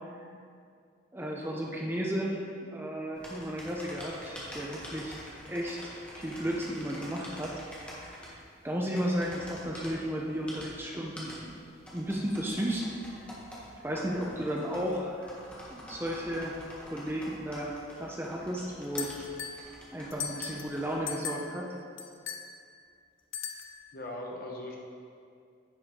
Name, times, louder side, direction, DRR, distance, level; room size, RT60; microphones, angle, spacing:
voice 1, 1.1-5.2 5.5-7.6 8.0-8.2 8.6-11.5 11.9-12.8 13.8-15.3 15.7-19.1 19.9-21.8, equal, 10° right, -2 dB, 0.7 m, -34 dB
sound 1, 3.1-21.0, equal, 5° left, 1.5 m, -46 dB
voice 2, 14.2-14.5 23.9-24.8, left 1 dB, 50° left, -1 dB, 1.3 m, -41 dB
sound 2, 19.0-19.7 20.1-20.7 21.1-21.6 22.0-22.5 23.3-23.8, left 7 dB, 85° left, 0.7 m, -38 dB
10.0 x 7.6 x 3.7 m, 2.3 s
head